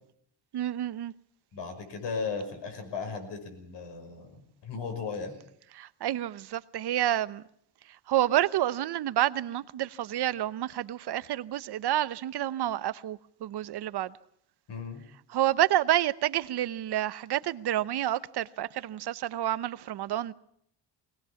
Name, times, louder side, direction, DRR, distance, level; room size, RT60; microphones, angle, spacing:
voice 1, 0.5-1.1 5.7-7.4 8.1-14.1 15.3-20.3, right 12 dB, 60° right, 0.9 m, -29 dB
voice 2, 1.5-5.3 14.7-15.0, left 5 dB, 70° left, 5.9 m, -36 dB
21.5 x 19.5 x 7.1 m
cardioid pair, 150°, 44 cm